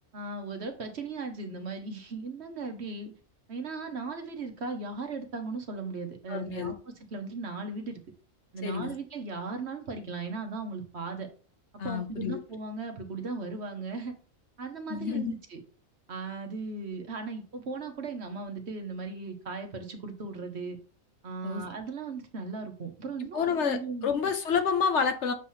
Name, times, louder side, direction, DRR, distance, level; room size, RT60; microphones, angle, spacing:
voice 1, 0.1-3.1 3.5-6.8 7.1-8.0 8.5-11.3 11.8-14.1 14.6-15.6 16.1-20.8 21.2-24.1, right 4 dB, 55° right, 1.2 m, -37 dB
voice 2, 6.3-6.7 8.6-8.9 11.8-12.4 14.9-15.3 21.4-21.6 23.2-25.3, left 6 dB, 65° left, 1.0 m, -29 dB
7.3 x 3.0 x 5.5 m
omnidirectional pair, 1.4 m